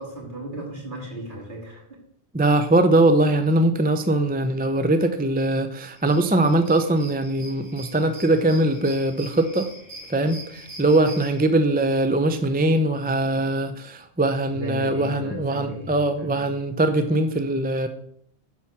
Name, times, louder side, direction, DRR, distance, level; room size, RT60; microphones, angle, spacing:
voice 1, 0.0-2.0 14.5-16.5, right 1 dB, 50° right, -2 dB, 2.9 m, -35 dB
voice 2, 2.3-9.7 10.1-17.9, right 1 dB, 10° right, 8 dB, 0.4 m, -21 dB
sound 1, 6.0-11.4, right 1 dB, 15° left, 4.0 m, -43 dB
9.9 x 4.6 x 7.1 m, 0.65 s
omnidirectional pair, 1.1 m